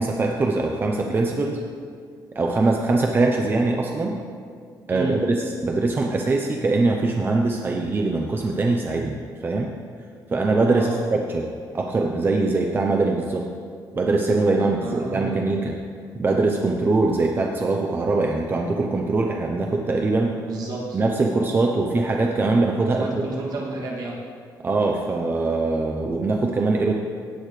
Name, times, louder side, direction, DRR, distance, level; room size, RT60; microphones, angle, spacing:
voice 1, 0.0-1.6 2.3-4.2 4.9-9.7 10.3-11.5 11.7-13.5 13.9-15.8 16.1-20.3 20.9-23.2 24.6-26.9, right 3 dB, 30° right, 2 dB, 0.8 m, -22 dB
voice 2, 4.9-5.3 10.7-11.0 14.6-15.4 20.4-21.0 22.9-24.2, right 2 dB, 60° right, -3 dB, 2.4 m, -31 dB
17.0 x 8.7 x 3.3 m, 2.3 s
cardioid pair, 125°, 8 cm